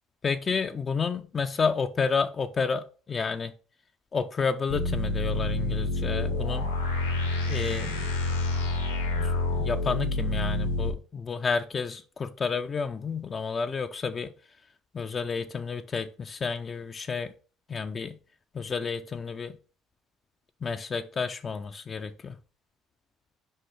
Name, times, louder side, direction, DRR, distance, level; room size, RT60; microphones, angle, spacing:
voice 1, 0.2-3.5 4.1-6.7 7.5-8.1 9.2-14.3 14.9-17.3 17.7-18.2 18.5-19.6 20.6-22.4, left 5 dB, 35° left, 0.5 m, -30 dB
sound 1, 4.7-10.9, left 2 dB, 80° left, 1.1 m, -28 dB
5.5 x 5.3 x 3.3 m
figure-of-eight pair, 55°, 0 cm